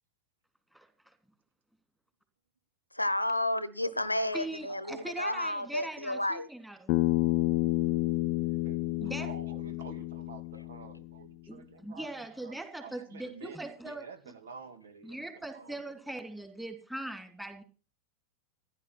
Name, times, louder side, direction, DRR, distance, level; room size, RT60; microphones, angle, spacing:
voice 1, 2.9-6.5, left 1 dB, 85° left, 18 dB, 1.0 m, -31 dB
voice 2, 4.3-7.0 9.0-9.3 11.5-14.0 15.0-17.6, right 1 dB, 5° right, 6 dB, 3.1 m, -41 dB
Bass guitar, 6.9-11.2, left 20 dB, 40° left, 0.6 m, -30 dB
voice 3, 8.6-15.9, right 5 dB, 65° right, 10 dB, 2.1 m, -50 dB
15.5 x 11.0 x 6.1 m, 0.39 s
figure-of-eight pair, 90°, 0 cm